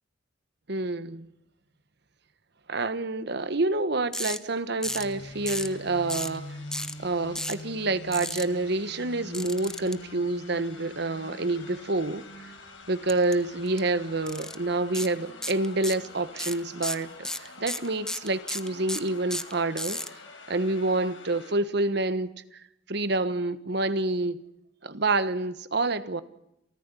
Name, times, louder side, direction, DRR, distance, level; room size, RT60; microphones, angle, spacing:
voice 1, 0.7-1.3 2.7-6.6 7.0-12.5 12.9-20.0 20.5-22.6 22.9-24.4 24.8-26.2, right 2 dB, 60° right, 1.4 m, -28 dB
sound 1, 4.1-4.4 4.8-5.1 5.5-5.7 6.1-6.4 6.7-6.9 7.3-7.6 8.1-8.4 9.3-9.9 13.1-13.3 13.7-13.8 14.3-14.6 14.9-15.1 15.4-16.1 16.4-20.1, left 1 dB, 5° left, 0.9 m, -33 dB
sound 2, 4.8-21.5, left 2 dB, 85° left, 6.0 m, -45 dB
29.0 x 14.0 x 8.4 m
head